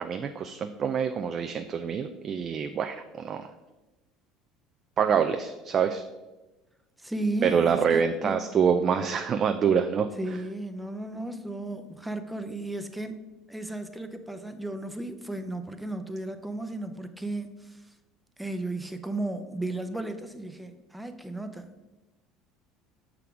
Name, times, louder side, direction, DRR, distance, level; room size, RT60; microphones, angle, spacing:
voice 1, 0.0-3.5 5.0-6.0 7.4-10.1, right 7 dB, 40° right, 7 dB, 0.4 m, -26 dB
voice 2, 7.0-8.3 10.2-13.2 13.5-17.9 18.4-21.7, right 2 dB, 5° right, 8 dB, 0.7 m, -34 dB
6.7 x 3.6 x 4.8 m, 1.1 s
hypercardioid pair, 65°, 0 cm